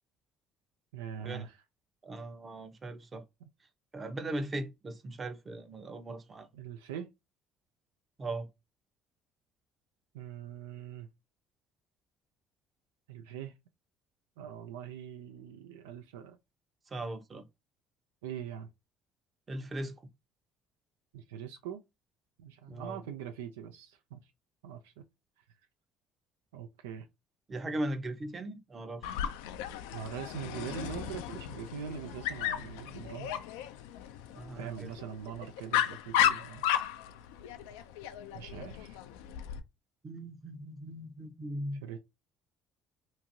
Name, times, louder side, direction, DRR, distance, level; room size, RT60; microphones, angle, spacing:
voice 1, 0.9-1.6 3.4-3.5 6.5-7.1 10.1-11.1 13.1-13.5 14.4-16.4 18.2-18.7 21.1-21.8 22.4-24.2 24.6-25.0 26.5-27.1 29.9-33.3 34.6-36.6 38.3-39.0 41.8-42.0, right 8 dB, 85° right, 0.3 m, -42 dB
voice 2, 2.0-3.2 3.9-6.5 8.2-8.5 16.9-17.4 19.5-20.0 22.7-23.0 27.5-29.1 34.3-34.9 40.0-41.8, right 1 dB, 35° right, 0.7 m, -38 dB
Dog, 29.0-39.6, left 10 dB, 80° left, 0.3 m, -34 dB
2.8 x 2.5 x 2.6 m
hypercardioid pair, 65°, 0 cm